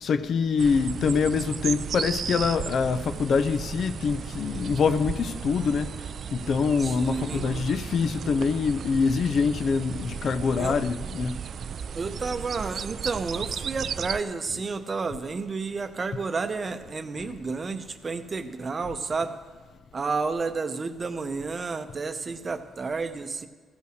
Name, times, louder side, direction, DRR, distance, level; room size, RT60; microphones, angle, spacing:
voice 1, 0.0-5.9 6.3-11.3, left 5 dB, 55° left, 0.5 m, -25 dB
sound 1, 0.6-14.2, right 7 dB, 55° right, 0.3 m, -35 dB
voice 2, 6.8-7.5 10.6-10.8 11.9-19.4 19.9-23.5, right 4 dB, 35° right, 0.7 m, -31 dB
15.0 x 5.6 x 6.4 m
cardioid pair, 90°, 0 cm